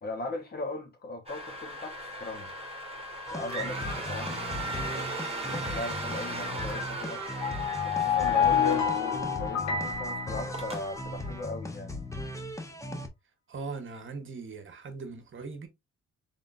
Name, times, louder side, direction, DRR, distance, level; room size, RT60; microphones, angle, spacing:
voice 1, 0.0-2.5 3.2-4.6 4.9-7.4 7.8-12.0, left 2 dB, 30° left, 1.3 m, -39 dB
sound 1, 1.3-9.5 9.9-10.1 10.5-10.8, right 2 dB, 20° right, 1.5 m, -37 dB
sound 2, 3.3-13.1, left 1 dB, 10° left, 0.8 m, -38 dB
sound 3, 7.3-11.3, left 7 dB, 70° left, 1.1 m, -28 dB
voice 2, 13.5-15.7, right 4 dB, 40° right, 1.2 m, -40 dB
3.7 x 3.7 x 2.5 m
cardioid pair, 90°, 30 cm